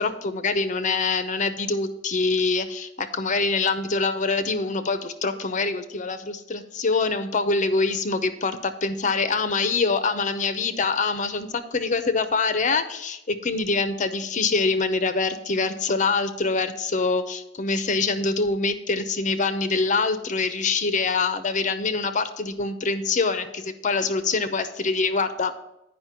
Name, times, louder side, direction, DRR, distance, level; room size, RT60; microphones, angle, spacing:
voice 1, 0.0-25.5, left 4 dB, 40° left, 10 dB, 0.7 m, -25 dB
9.1 x 5.4 x 5.7 m, 0.90 s
head